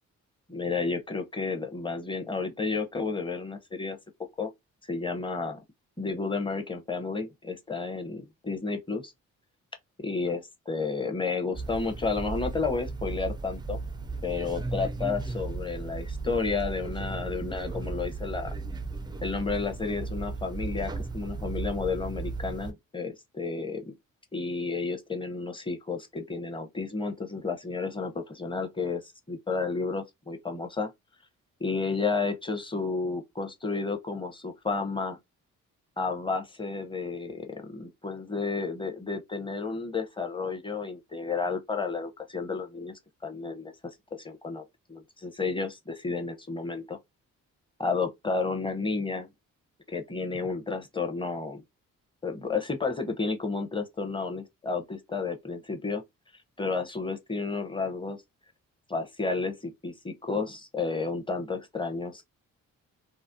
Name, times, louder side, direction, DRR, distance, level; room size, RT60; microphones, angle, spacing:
voice 1, 0.5-4.0 4.4-4.5 4.9-5.6 6.0-9.1 10.0-13.8 14.2-18.5 19.2-23.9 24.3-29.0 29.3-30.9 31.6-35.2 36.0-42.9 43.2-43.7 44.2-44.6 44.9-47.0 47.8-49.3 49.9-51.6 52.2-56.0 56.6-58.2 58.9-62.2, left 4 dB, 15° left, 0.7 m, -31 dB
sound 1, 11.5-22.7, right 3 dB, 10° right, 0.3 m, -35 dB
2.4 x 2.0 x 2.5 m
hypercardioid pair, 40°, 39 cm